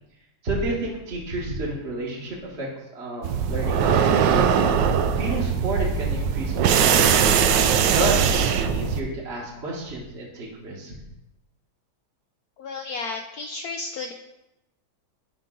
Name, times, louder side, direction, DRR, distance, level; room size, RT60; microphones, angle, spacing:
voice 1, 0.4-2.7 2.9-4.5 5.1-7.3 7.8-10.9, right 2 dB, 35° right, -4 dB, 1.5 m, -30 dB
sound 1, 3.2-9.0, right 7 dB, 75° right, 1.2 m, -20 dB
voice 2, 12.6-14.1, left 4 dB, 75° left, 3 dB, 0.9 m, -33 dB
9.2 x 5.2 x 3.8 m, 0.92 s
omnidirectional pair, 2.2 m